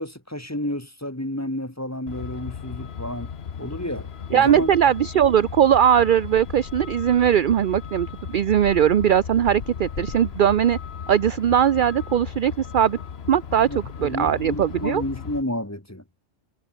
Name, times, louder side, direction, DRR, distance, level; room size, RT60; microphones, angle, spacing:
voice 1, 0.0-3.3 3.6-4.7 13.6-16.0, left 1 dB, 10° left, 2.2 m, -31 dB
Truck, 2.1-15.4, left 7 dB, 55° left, 1.3 m, -36 dB
voice 2, 4.3-10.8 11.1-13.0 13.3-13.7 14.0-15.0, right 9 dB, 55° right, 0.6 m, -19 dB
omnidirectional pair, 1.3 m